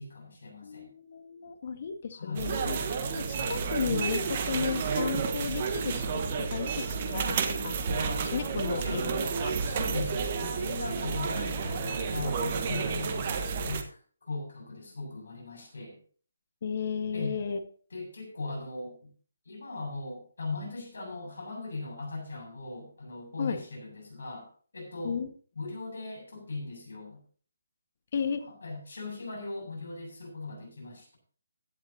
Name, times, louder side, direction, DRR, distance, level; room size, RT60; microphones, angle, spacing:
voice 1, 0.0-0.9 2.1-2.5 8.8-9.0 9.6-16.0 17.1-17.3 17.9-19.1 19.5-24.5 24.7-25.2 25.6-27.2 28.5-31.2, left 3 dB, 65° left, 2 dB, 7.4 m, -39 dB
voice 2, 0.6-2.8 3.1-9.5 16.6-17.6 23.4-23.6 25.0-25.3 28.1-28.4, left 6 dB, 45° left, 7 dB, 1.8 m, -34 dB
sound 1, 2.4-13.8, right 5 dB, 35° right, 1.5 m, -31 dB
16.5 x 11.0 x 2.9 m, 0.43 s
figure-of-eight pair, 145°, 0 cm